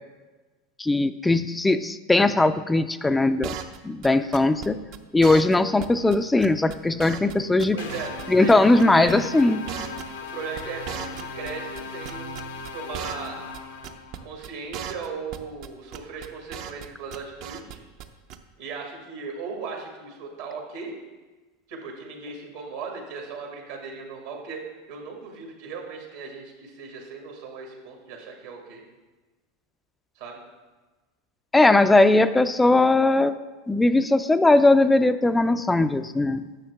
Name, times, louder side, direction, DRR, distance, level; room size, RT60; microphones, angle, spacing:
voice 1, 0.8-3.5 3.8-4.8 5.1-7.8 8.3-9.6 31.5-33.4 33.7-36.4, left 2 dB, 10° left, 11 dB, 0.3 m, -19 dB
sound 1, 3.4-3.8 4.0-4.1 4.3-4.7 4.9-5.0 5.2-5.6 5.8-5.9 6.1-6.2 6.4-7.3 7.6-8.5 8.8-9.1 9.4-11.5 11.8-13.3 13.5-13.6 13.8-14.2 14.4-14.5 14.7-15.1 15.3-15.7 15.9-16.9 17.1-17.7 18.0-18.1 18.3-18.4, right 9 dB, 55° right, 0.6 m, -36 dB
voice 2, 7.7-9.4 10.3-13.4 14.2-17.8 18.6-20.9 21.7-24.6 24.9-28.8 30.1-30.4 32.2-32.3, right 5 dB, 75° right, 1 dB, 1.7 m, -37 dB
sound 2, 7.8-14.3, left 4 dB, 80° left, 0.8 m, -37 dB
8.8 x 6.3 x 3.5 m, 1.2 s
hypercardioid pair, 95°, 0 cm